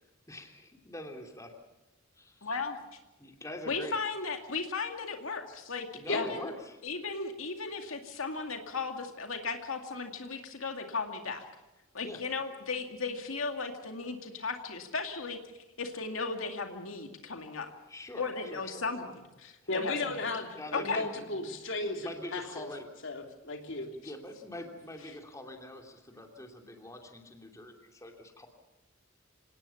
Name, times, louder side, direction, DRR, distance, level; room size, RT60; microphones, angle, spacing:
voice 1, 0.3-1.5 2.2-2.5 3.2-4.0 5.9-6.8 12.0-12.2 17.9-18.8 20.5-21.4 21.8-22.9 24.0-28.5, left 1 dB, 15° left, 3 dB, 2.8 m, -44 dB
voice 2, 2.4-2.8 3.7-6.5 6.8-11.4 11.9-17.7 18.2-20.3 20.7-21.0, left 4 dB, 85° left, 4 dB, 2.3 m, -36 dB
voice 3, 19.7-20.5 20.8-22.7 23.0-23.9, left 3 dB, 65° left, 3 dB, 3.5 m, -34 dB
26.5 x 18.5 x 7.1 m, 1.1 s
head